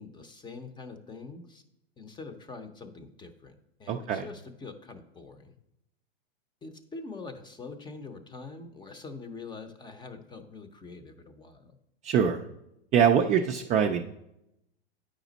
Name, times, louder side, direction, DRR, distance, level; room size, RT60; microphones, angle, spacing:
voice 1, 0.0-1.6 2.0-5.5 6.6-11.8, left 4 dB, 15° left, 9 dB, 0.7 m, -44 dB
voice 2, 3.9-4.3 12.0-12.4 12.9-14.0, right 7 dB, 25° right, 3 dB, 0.4 m, -23 dB
8.9 x 5.1 x 4.0 m, 0.83 s
hypercardioid pair, 120°, 31 cm